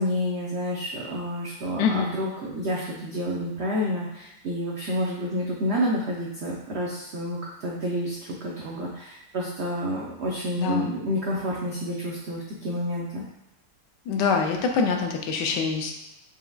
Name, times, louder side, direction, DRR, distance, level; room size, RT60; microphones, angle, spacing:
voice 1, 0.0-13.2, equal, 80° right, -4 dB, 0.6 m, -29 dB
voice 2, 1.8-2.1 10.6-11.0 14.1-15.9, left 5 dB, 80° left, 3 dB, 1.2 m, -25 dB
4.8 x 3.4 x 2.2 m, 0.88 s
omnidirectional pair, 1.9 m